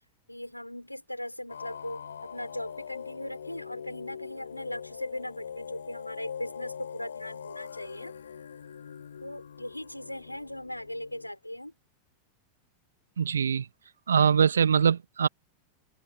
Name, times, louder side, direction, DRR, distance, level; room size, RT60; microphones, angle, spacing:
voice 1, 0.3-2.0 2.3-8.1 9.2-11.7, left 1 dB, 85° left, 5.9 m, -39 dB
sound 1, 1.5-11.3, left 7 dB, 70° left, 4.7 m, -42 dB
voice 2, 13.2-13.7 14.1-15.3, right 7 dB, 70° right, 2.0 m, -23 dB
figure-of-eight pair, 90°, 0 cm